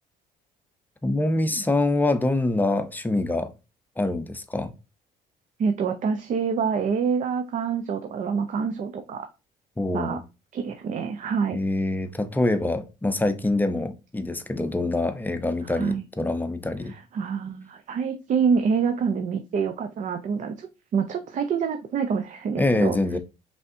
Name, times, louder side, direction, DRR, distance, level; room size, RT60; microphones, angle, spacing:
voice 1, 1.0-3.5 4.0-4.7 9.8-10.2 11.5-16.9 22.6-23.2, left 2 dB, 10° left, 0.6 m, -25 dB
voice 2, 5.6-9.3 9.9-10.2 10.5-11.6 15.6-16.0 16.9-23.0, right 6 dB, 50° right, 0.6 m, -26 dB
5.2 x 3.4 x 2.6 m
cardioid pair, 110°, 17 cm